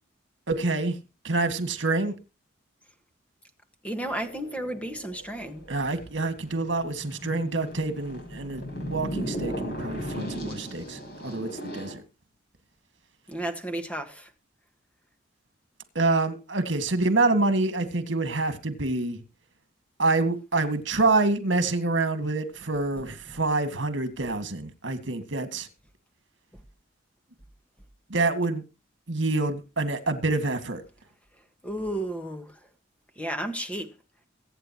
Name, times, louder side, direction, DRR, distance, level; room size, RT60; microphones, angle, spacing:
voice 1, 0.5-1.0 1.2-2.1 5.7-12.0 16.0-19.2 20.0-25.7 28.1-28.6 29.1-30.8, right 3 dB, 70° right, 2.0 m, -27 dB
voice 2, 3.8-5.6 13.3-14.3 31.6-32.5 33.2-33.9, right 1 dB, 5° left, 1.6 m, -32 dB
sound 1, 4.0-11.9, equal, 55° left, 5.6 m, -37 dB
23.0 x 9.0 x 3.0 m
head